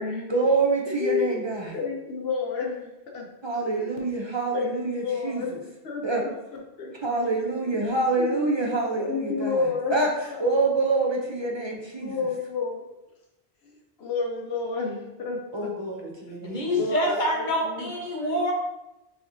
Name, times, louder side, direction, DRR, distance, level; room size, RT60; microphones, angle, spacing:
voice 1, 0.3-1.8 3.4-5.4 6.0-6.2 7.0-9.6 9.9-10.1 10.4-12.1 15.5-16.8, right 3 dB, 35° right, -1 dB, 0.5 m, -26 dB
voice 2, 0.9-1.4 1.7-3.3 3.6-4.0 4.5-7.7 8.1-8.6 9.1-10.0 10.3-10.8 12.0-12.8 13.6-15.7 16.3-16.4 16.7-17.9, left 4 dB, 80° left, 0 dB, 1.0 m, -31 dB
voice 3, 16.4-18.5, left 1 dB, 50° left, -1 dB, 1.0 m, -26 dB
6.2 x 2.9 x 2.6 m, 0.94 s
omnidirectional pair, 1.0 m